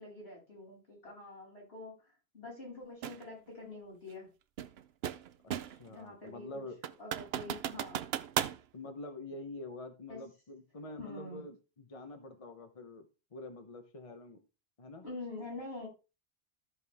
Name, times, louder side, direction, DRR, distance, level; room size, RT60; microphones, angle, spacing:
voice 1, 0.0-4.3 5.9-6.6 7.0-8.0 10.1-10.2 11.0-11.4 15.0-15.9, left 2 dB, 85° left, -4 dB, 6.8 m, -46 dB
sound 1, 3.0-3.2 4.6-5.9 6.3-6.4 6.8-8.6, right 10 dB, 75° right, 0.8 m, -36 dB
voice 2, 5.7-6.8 8.7-14.4 14.8-15.1, left 2 dB, 35° left, 7 dB, 1.0 m, -46 dB
14.0 x 5.3 x 3.5 m, 0.30 s
omnidirectional pair, 1.0 m